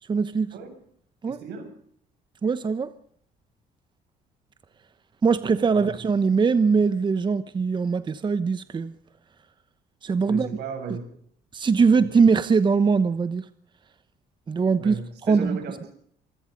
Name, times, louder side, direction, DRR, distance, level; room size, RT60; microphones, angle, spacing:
voice 1, 0.1-0.5 1.2-1.4 2.4-2.9 5.2-8.9 10.0-10.5 11.5-13.5 14.5-15.0 15.3-15.6, right 5 dB, 25° right, 1.0 m, -21 dB
voice 2, 1.3-1.7 5.4-6.0 10.3-11.0 14.8-15.9, right 5 dB, 75° right, 7.3 m, -36 dB
26.5 x 20.0 x 5.3 m
cardioid pair, 110°, 17 cm